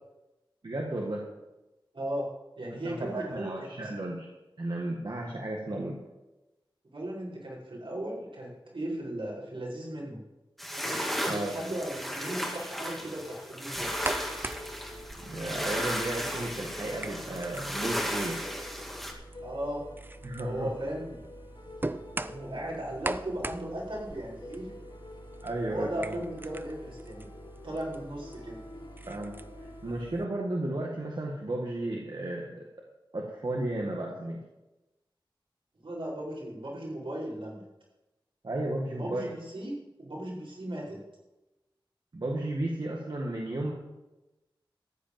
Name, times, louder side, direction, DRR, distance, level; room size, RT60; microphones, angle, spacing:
voice 1, 0.6-1.2 2.8-4.3 4.6-6.0 11.2-11.5 15.2-18.4 20.2-20.7 25.4-26.1 29.1-29.3 29.8-32.7 33.1-34.4 38.4-39.3 42.1-43.7, right 1 dB, 60° right, -2 dB, 1.8 m, -33 dB
voice 2, 1.9-3.9 6.9-10.2 11.4-14.0 19.4-19.9 20.4-21.1 22.1-24.7 25.6-27.3 27.6-28.6 35.8-37.6 39.0-39.7 40.0-41.0, right 1 dB, 80° right, -6 dB, 5.4 m, -37 dB
sound 1, 10.6-19.1, equal, ahead, 2.1 m, -35 dB
sound 2, 10.7-29.9, left 2 dB, 55° left, 1.3 m, -49 dB
sound 3, 13.7-30.2, right 2 dB, 25° right, 0.5 m, -42 dB
14.0 x 5.2 x 9.3 m, 1.0 s
wide cardioid pair, 80°, 9 cm